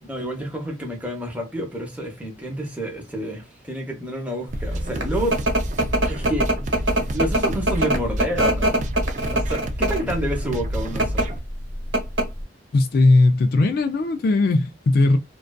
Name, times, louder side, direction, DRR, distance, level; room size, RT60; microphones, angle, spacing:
voice 1, 0.0-5.4 6.1-6.5 7.1-8.8 9.3-11.3, right 1 dB, 10° right, 0.7 m, -29 dB
sound 1, 4.5-11.4, equal, 40° right, 0.4 m, -29 dB
sound 2, 4.7-10.1 10.8-11.2 11.6-11.7 11.9-12.4, right 1 dB, 75° right, 1.1 m, -22 dB
voice 2, 12.7-15.2, left 2 dB, 50° left, 0.3 m, -18 dB
2.5 x 2.3 x 2.2 m
head